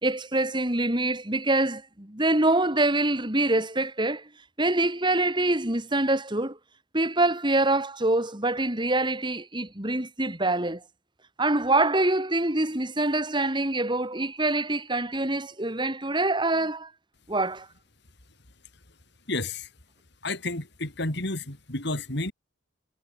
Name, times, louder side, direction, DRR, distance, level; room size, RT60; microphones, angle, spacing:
voice 1, 0.0-4.2 4.6-6.6 6.9-10.8 11.4-16.9 17.3-17.7, right 2 dB, 25° right, 3.0 m, -25 dB
voice 2, 19.3-19.7 20.2-22.3, left 2 dB, 60° left, 4.6 m, -31 dB
head